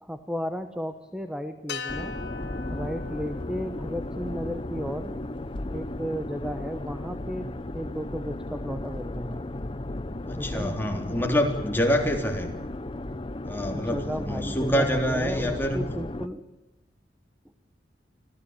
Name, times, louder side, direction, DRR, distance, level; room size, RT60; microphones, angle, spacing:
voice 1, 0.0-2.1 2.7-5.1 5.7-9.4 10.3-10.8 13.7-16.4, equal, 5° right, 8 dB, 1.1 m, -34 dB
sound 1, 1.7-6.0, left 5 dB, 75° left, 2.4 m, -41 dB
sound 2, 1.9-16.3, left 1 dB, 30° left, 0.8 m, -35 dB
voice 2, 10.3-12.5 13.4-15.8, equal, 10° left, 2 dB, 3.5 m, -26 dB
25.5 x 16.0 x 9.0 m, 1.0 s
head